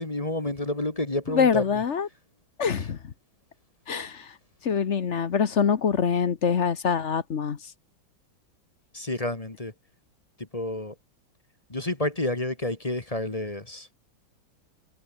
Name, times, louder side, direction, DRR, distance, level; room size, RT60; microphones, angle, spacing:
voice 1, 0.0-1.6 8.9-9.7 10.5-10.9 11.7-13.9, left 1 dB, 20° left, 1.7 m, -29 dB
voice 2, 1.3-2.1 2.6-3.1 3.9-4.3 4.6-7.6, left 6 dB, 45° left, 1.2 m, -24 dB
omnidirectional pair, 2.2 m